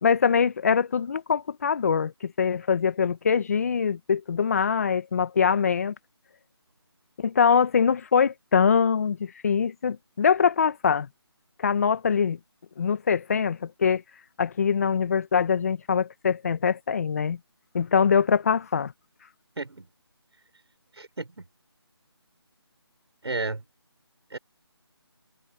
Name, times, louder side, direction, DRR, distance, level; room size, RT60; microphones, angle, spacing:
voice 1, 0.0-5.9 7.2-11.1 11.6-12.4 12.8-14.0 14.4-17.4 17.7-18.9, left 6 dB, 35° left, 1.5 m, -23 dB
voice 2, 19.6-19.9 21.0-21.4 23.2-23.6 24.3-24.4, right 3 dB, 75° right, 4.8 m, -32 dB
figure-of-eight pair, 165°, 14 cm